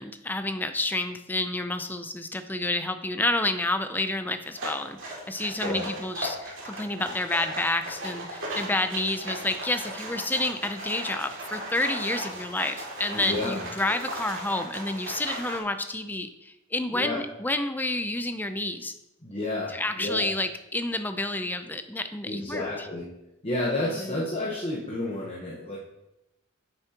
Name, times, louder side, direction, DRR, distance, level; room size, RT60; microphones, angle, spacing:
voice 1, 0.0-18.9 19.7-22.9 23.9-24.2, left 2 dB, 10° left, 9 dB, 0.4 m, -29 dB
sound 1, 4.5-15.6, right 1 dB, 65° right, 2.4 m, -37 dB
voice 2, 13.1-13.6 16.9-17.2 19.2-20.3 22.2-23.1 23.4-25.8, left 2 dB, 30° left, -3 dB, 1.0 m, -31 dB
9.3 x 6.9 x 2.9 m, 0.91 s
head